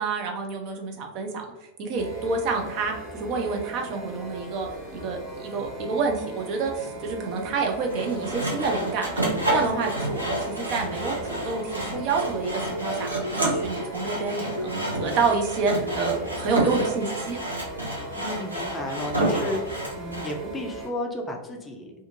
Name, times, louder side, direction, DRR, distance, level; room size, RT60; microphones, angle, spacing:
voice 1, 0.0-1.4 1.8-13.1 13.4-17.4, right 4 dB, 40° right, 2 dB, 0.5 m, -28 dB
sound 1, 2.0-20.9, right 2 dB, 20° right, 1.4 m, -39 dB
sound 2, 7.0-15.5, equal, 80° left, 0.3 m, -38 dB
Sawing, 7.9-20.4, right 1 dB, 85° right, 0.7 m, -29 dB
voice 2, 18.1-21.9, left 1 dB, 15° left, 1 dB, 0.4 m, -33 dB
2.5 x 2.4 x 2.6 m, 1.1 s
figure-of-eight pair, 90°, 0 cm